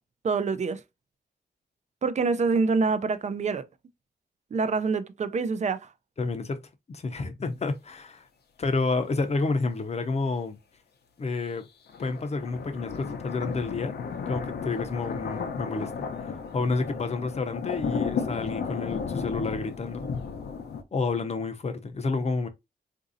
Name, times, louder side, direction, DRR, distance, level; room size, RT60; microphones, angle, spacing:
voice 1, 0.2-0.8 2.0-3.7 4.5-5.9, right 4 dB, 45° right, 0.4 m, -26 dB
voice 2, 6.2-8.3 8.6-10.6 11.2-11.7 12.0-14.0 14.3-20.1 20.9-22.5, left 3 dB, 40° left, 0.6 m, -30 dB
sound 1, 11.9-20.8, left 5 dB, 85° left, 0.6 m, -34 dB
3.9 x 2.6 x 2.5 m
wide cardioid pair, 110°, 17 cm